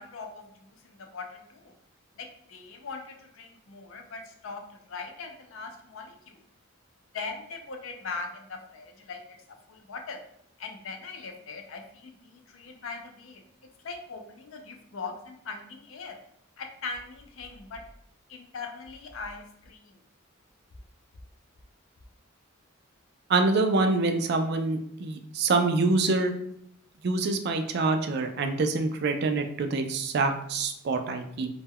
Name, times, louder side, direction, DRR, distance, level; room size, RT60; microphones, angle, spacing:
voice 1, 0.0-1.7 2.2-4.6 4.9-6.4 7.1-9.2 9.7-10.2 10.6-13.4 13.8-16.2 16.6-17.9 18.3-19.9, left 4 dB, 70° left, 4 dB, 0.4 m, -40 dB
voice 2, 23.3-26.3 27.0-31.5, right 3 dB, 50° right, 6 dB, 0.3 m, -26 dB
2.2 x 2.1 x 3.4 m, 0.72 s
head